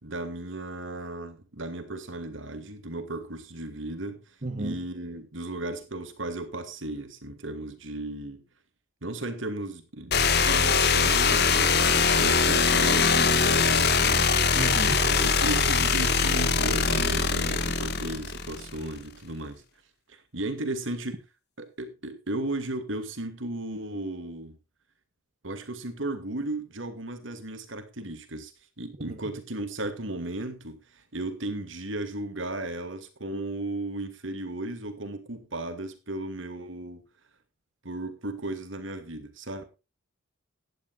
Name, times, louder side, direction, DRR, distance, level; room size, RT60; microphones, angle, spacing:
voice 1, 0.0-4.2 4.6-8.4 9.0-14.2 15.0-19.6 20.1-21.2 21.6-24.6 25.4-28.5 28.8-30.8 31.1-37.0 37.8-39.6, right 2 dB, 65° right, 2.4 m, -35 dB
voice 2, 4.4-4.7 14.6-15.1 29.1-29.2, right 2 dB, 35° right, 1.3 m, -32 dB
sound 1, 10.1-18.8, left 5 dB, 55° left, 1.7 m, -22 dB
17.0 x 11.5 x 2.5 m
head